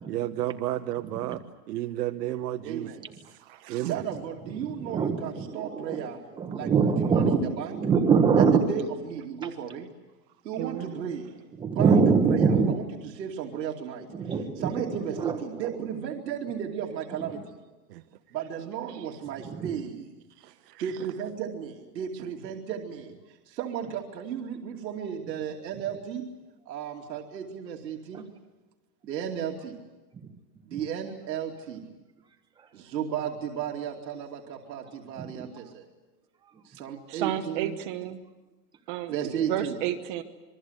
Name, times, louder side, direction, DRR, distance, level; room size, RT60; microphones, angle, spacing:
voice 1, 0.1-1.4 1.7-2.9 3.7-4.1 17.9-18.0 18.9-19.0 20.4-20.8, right 14 dB, 70° right, 9 dB, 1.2 m, -32 dB
voice 2, 2.6-3.0 3.8-6.2 6.5-7.8 8.4-9.9 10.4-14.1 14.6-17.6 18.3-20.1 20.5-20.6 20.8-26.3 26.7-28.3 29.1-29.8 30.6-31.9 32.7-35.9 36.6-37.8 39.1-39.8, right 8 dB, 85° right, 1 dB, 2.9 m, -34 dB
voice 3, 3.2-3.9 10.6-10.9 37.1-38.2 38.9-40.2, right 12 dB, 30° right, 8 dB, 1.0 m, -33 dB
voice 4, 4.8-6.1 6.4-8.6 11.6-12.8 14.1-14.7 15.2-15.4 19.4-19.7 28.1-28.2 30.7-30.8 35.2-35.4, right 5 dB, 10° right, 6 dB, 1.2 m, -23 dB
26.5 x 22.5 x 8.2 m, 1.2 s
supercardioid pair, 170°, 49 cm